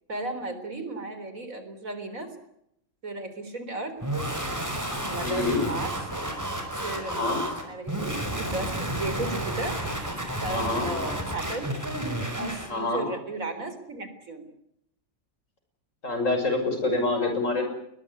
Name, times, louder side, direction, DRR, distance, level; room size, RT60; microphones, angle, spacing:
voice 1, 0.1-2.3 3.0-3.9 5.0-5.9 6.8-7.2 7.6-9.8 10.4-11.8 12.3-14.5, right 2 dB, 80° right, 9 dB, 4.3 m, -35 dB
sound 1, 4.0-12.7, right 1 dB, 10° right, 5.2 m, -31 dB
voice 2, 5.2-5.6 7.0-7.4 10.5-10.9 12.7-13.0 16.0-17.6, left 3 dB, 70° left, 5 dB, 6.7 m, -26 dB
22.0 x 20.5 x 9.7 m, 0.78 s
omnidirectional pair, 1.4 m